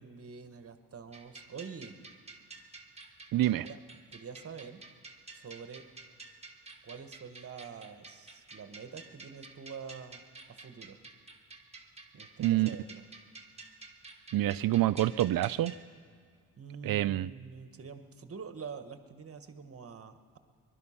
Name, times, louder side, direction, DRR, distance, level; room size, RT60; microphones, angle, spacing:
voice 1, 0.0-2.0 3.6-3.8 4.1-4.8 5.3-5.8 6.8-11.0 12.1-13.0 16.6-20.4, right 6 dB, 40° right, 9 dB, 1.2 m, -46 dB
sound 1, 1.1-15.8, right 3 dB, 15° right, 1.4 m, -51 dB
voice 2, 3.3-3.7 12.4-12.7 14.3-15.7 16.8-17.3, right 14 dB, 65° right, 16 dB, 0.5 m, -27 dB
21.5 x 12.0 x 5.7 m, 2.1 s
cardioid pair, 100°, 37 cm